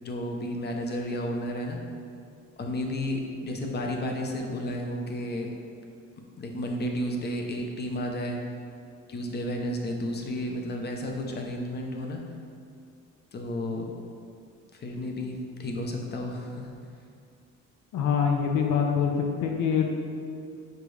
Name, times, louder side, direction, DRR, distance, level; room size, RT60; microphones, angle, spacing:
voice 1, 0.0-1.8 2.6-5.5 6.4-8.4 9.1-12.2 13.3-13.9 14.7-16.7, left 1 dB, 35° left, 2 dB, 0.7 m, -32 dB
voice 2, 17.9-19.1 19.4-19.9, left 7 dB, 75° left, 2 dB, 0.8 m, -24 dB
6.7 x 5.1 x 3.3 m, 2.4 s
cardioid pair, 140°, 31 cm